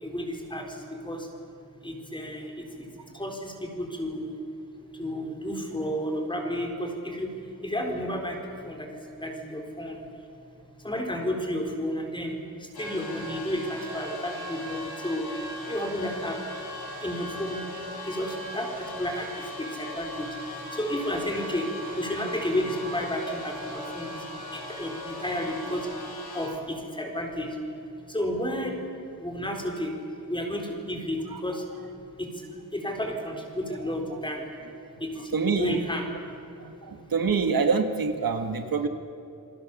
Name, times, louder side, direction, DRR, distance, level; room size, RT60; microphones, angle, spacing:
voice 1, 0.0-0.7 1.0-1.2 1.8-2.5 3.1-4.3 5.0-7.3 7.6-8.4 8.7-8.9 9.2-10.0 10.8-12.3 12.8-15.3 15.7-16.4 17.0-17.6 18.0-19.3 19.6-20.3 20.7-21.7 22.0-24.1 24.5-25.9 26.3-27.5 28.1-28.8 29.2-29.9 30.3-31.6 32.2-32.3 32.7-34.5 35.0-35.1 35.6-36.1, equal, 15° left, 2 dB, 4.1 m, -31 dB
sound 1, 12.7-26.5, left 1 dB, 90° left, 6.2 m, -39 dB
voice 2, 35.3-35.8 36.6-38.9, right 5 dB, 70° right, 6 dB, 1.7 m, -26 dB
28.0 x 23.5 x 7.2 m, 2.8 s
wide cardioid pair, 175°, 37 cm